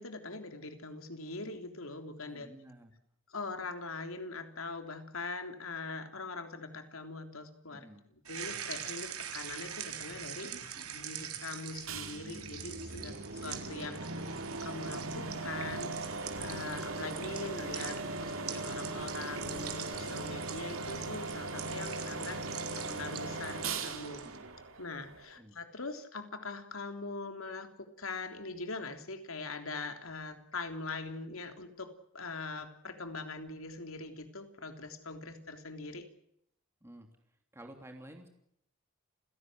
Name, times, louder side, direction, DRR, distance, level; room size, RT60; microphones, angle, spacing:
voice 1, 0.0-2.5 3.3-7.9 8.3-15.9 16.4-22.4 22.7-24.2 24.8-36.1, left 3 dB, 70° left, 7 dB, 3.4 m, -42 dB
voice 2, 2.2-2.9 7.7-8.0 13.0-13.3 24.2-24.5 25.4-25.5 36.8-37.1 37.5-38.3, right 1 dB, 10° right, 4 dB, 3.0 m, -52 dB
sound 1, 8.2-24.4, right 9 dB, 85° right, 4.0 m, -44 dB
sound 2, 11.9-25.4, right 3 dB, 70° right, 3.0 m, -39 dB
29.5 x 17.0 x 7.9 m, 0.73 s
head